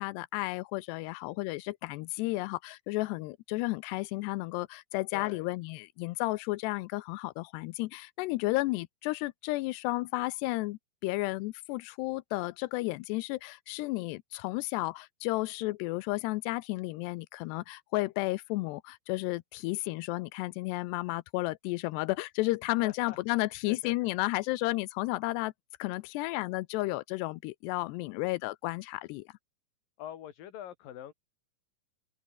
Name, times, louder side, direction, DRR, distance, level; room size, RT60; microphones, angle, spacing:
voice 1, 0.0-25.5 25.8-29.3, left 21 dB, 80° left, 2.6 m, -32 dB
voice 2, 5.1-5.5 22.8-23.2 23.7-23.9 30.0-31.1, left 11 dB, 60° left, 3.3 m, -44 dB
open air
omnidirectional pair, 5.1 m